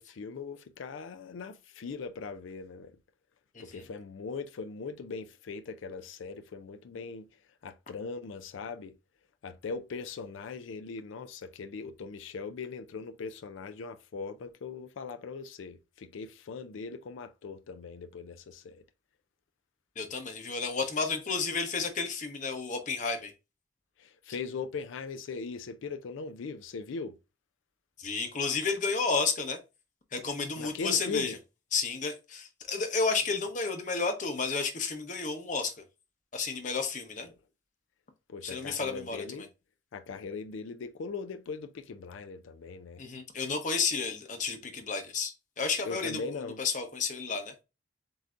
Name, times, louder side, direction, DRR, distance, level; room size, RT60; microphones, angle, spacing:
voice 1, 0.0-3.0 3.6-7.3 7.6-9.0 9.4-18.8 24.0-27.2 30.6-31.4 37.2-37.3 38.3-39.5 39.9-43.0 45.8-46.6, left 4 dB, 85° left, 0.4 m, -40 dB
voice 2, 3.5-3.8 20.0-23.3 28.0-29.6 30.1-31.4 31.7-35.7 36.3-37.3 38.4-39.2 43.0-47.5, left 4 dB, 40° left, 0.8 m, -31 dB
7.7 x 2.7 x 2.5 m
head